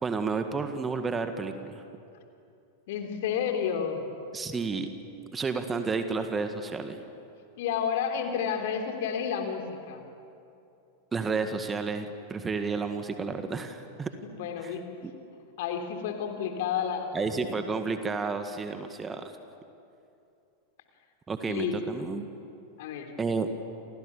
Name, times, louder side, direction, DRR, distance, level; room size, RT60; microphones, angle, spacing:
voice 1, 0.0-1.8 4.3-4.9 5.3-7.0 11.1-14.1 14.6-14.8 15.0-15.1 17.1-19.3 21.3-22.3 23.2-23.5, right 4 dB, 15° right, 8 dB, 1.9 m, -31 dB
voice 2, 2.9-4.1 7.6-10.0 14.2-14.9 15.6-17.6 21.4-21.8 22.8-23.1, left 7 dB, 50° left, 5 dB, 3.5 m, -31 dB
29.5 x 27.5 x 7.2 m, 2.7 s
figure-of-eight pair, 90°, 0 cm